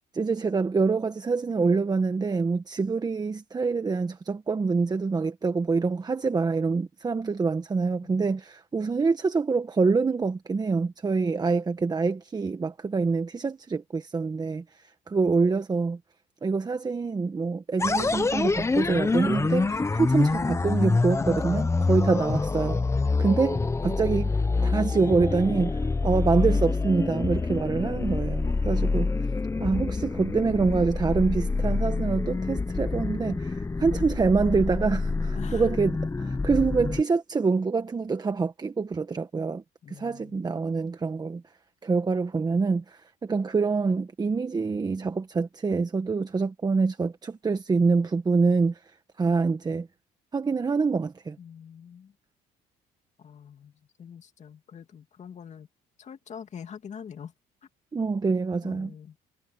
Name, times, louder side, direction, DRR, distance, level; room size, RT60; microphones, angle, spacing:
voice 1, 0.1-16.0 16.4-22.8 23.2-24.3 24.6-29.1 29.6-41.4 41.8-49.9 50.3-51.4 57.9-58.9, right 4 dB, 25° right, 1.3 m, -26 dB
voice 2, 8.0-8.4 21.8-22.0 28.4-29.6 35.3-35.7 39.8-40.8 51.4-52.1 53.2-55.7 56.0-57.3 58.6-59.2, left 7 dB, 45° left, 2.6 m, -45 dB
sound 1, 17.8-37.0, left 3 dB, 15° left, 1.0 m, -26 dB
cardioid pair, 110°, 17 cm